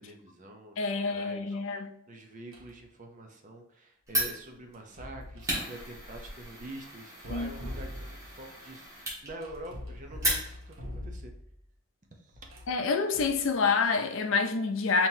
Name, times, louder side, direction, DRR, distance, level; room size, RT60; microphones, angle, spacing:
voice 1, 0.0-11.3 12.1-12.5, right 1 dB, 35° right, 0.6 m, -46 dB
voice 2, 0.8-1.9 7.3-7.5 12.7-15.1, left 4 dB, 65° left, 0.5 m, -27 dB
sound 1, 2.5-2.8 4.7-5.6 7.1-8.4 9.4-11.6 12.3-13.5, left 1 dB, 65° right, 0.9 m, -43 dB
Fire, 4.1-10.9, right 1 dB, 15° right, 1.3 m, -36 dB
5.5 x 2.9 x 2.7 m
head